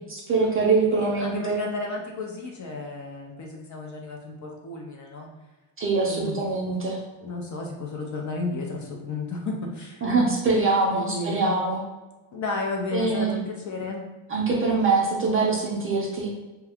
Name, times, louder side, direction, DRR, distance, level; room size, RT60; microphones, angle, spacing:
voice 1, 0.1-1.6 5.8-7.0 10.0-11.8 12.9-13.4 14.3-16.3, right 3 dB, 30° right, -2 dB, 0.4 m, -23 dB
voice 2, 0.9-5.3 6.0-6.4 7.2-10.1 10.9-11.5 12.3-14.1, left 3 dB, 40° left, 1 dB, 0.5 m, -33 dB
2.7 x 2.2 x 3.4 m, 1.1 s
cardioid pair, 130°, 50 cm